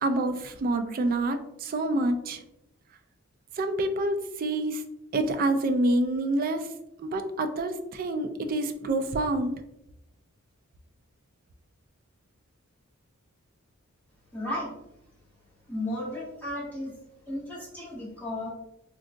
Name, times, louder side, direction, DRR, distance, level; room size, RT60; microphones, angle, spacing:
voice 1, 0.0-2.4 3.6-4.8 5.1-6.7 7.0-9.6, right 2 dB, 45° right, 7 dB, 0.3 m, -27 dB
voice 2, 14.3-14.7 15.7-17.0 17.3-18.5, left 1 dB, 10° left, -7 dB, 1.0 m, -34 dB
3.7 x 2.3 x 2.5 m, 0.85 s
head